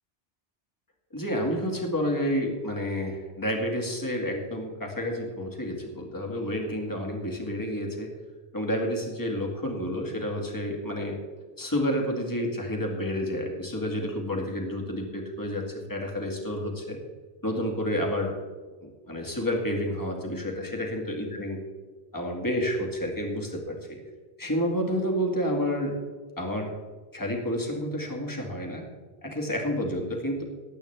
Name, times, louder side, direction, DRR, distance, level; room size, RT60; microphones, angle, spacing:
voice 1, 1.1-8.1 8.5-11.2 11.6-17.0 17.4-18.4 18.8-21.6 22.1-24.0 24.4-25.9 26.4-26.7 27.1-28.8 29.2-30.4, equal, 20° left, 0 dB, 2.1 m, -30 dB
19.0 x 8.9 x 3.4 m, 1.4 s
omnidirectional pair, 1.1 m